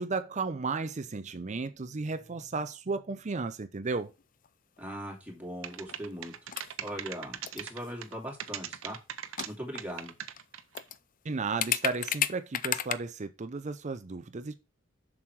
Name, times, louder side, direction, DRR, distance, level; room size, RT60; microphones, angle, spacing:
voice 1, 0.0-4.1 11.2-14.5, right 4 dB, 35° right, 0.6 m, -34 dB
sound 1, 4.1-4.5 4.8-4.9 5.7-6.1 6.4-6.8 7.4-7.9 9.1-9.2 9.4-10.0 10.4-10.5 10.7-11.0 11.6-12.9, left 10 dB, 45° left, 0.4 m, -32 dB
voice 2, 4.8-6.4 6.8-9.0 9.5-10.1, equal, 10° right, 2.8 m, -40 dB
sound 2, 5.6-8.1 8.4-9.5 9.8-10.9, right 9 dB, 90° right, 0.8 m, -39 dB
7.3 x 6.3 x 4.7 m
head